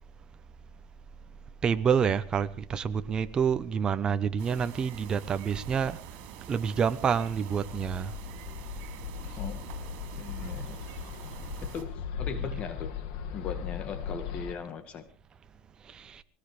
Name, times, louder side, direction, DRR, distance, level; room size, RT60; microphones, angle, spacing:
voice 1, 1.6-6.0 6.5-8.1 12.4-12.6 15.9-16.2, right 7 dB, 25° right, 0.9 m, -28 dB
sound 1, 4.4-11.8, right 9 dB, 65° right, 3.9 m, -45 dB
Bird, 7.3-14.5, left 7 dB, 80° left, 2.1 m, -38 dB
voice 2, 9.4-9.7 10.2-10.8 11.6-13.0 13.3-15.1, left 6 dB, 40° left, 1.8 m, -39 dB
22.0 x 18.5 x 3.4 m
cardioid pair, 140°, 3 cm